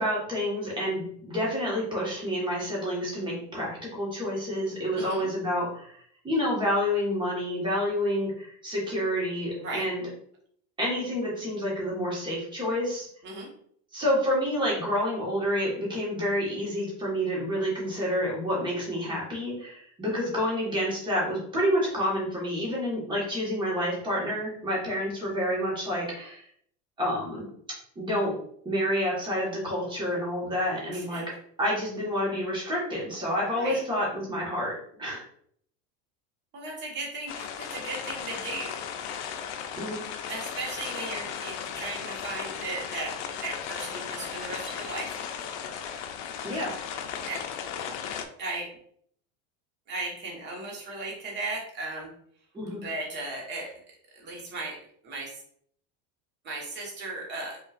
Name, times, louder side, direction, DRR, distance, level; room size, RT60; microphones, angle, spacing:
voice 1, 0.0-10.0 10.8-13.1 13.9-26.5 27.0-27.5 27.9-28.3 28.6-31.2 31.6-34.7 35.0-35.2 39.7-40.0 46.4-46.7 52.5-52.8, equal, 15° right, -5 dB, 1.5 m, -29 dB
voice 2, 4.9-5.3 9.6-9.8 13.2-13.5 30.9-31.2 33.5-33.8 36.5-38.8 40.3-43.1 43.4-45.2 47.2-47.4 48.4-48.7 49.9-52.1 52.8-53.7 54.1-54.8 55.0-55.3 56.4-57.6, right 2 dB, 30° right, -2 dB, 1.4 m, -36 dB
sound 1, 37.3-48.3, left 8 dB, 70° left, 0.6 m, -36 dB
5.5 x 2.8 x 2.5 m, 0.63 s
cardioid pair, 165°, 36 cm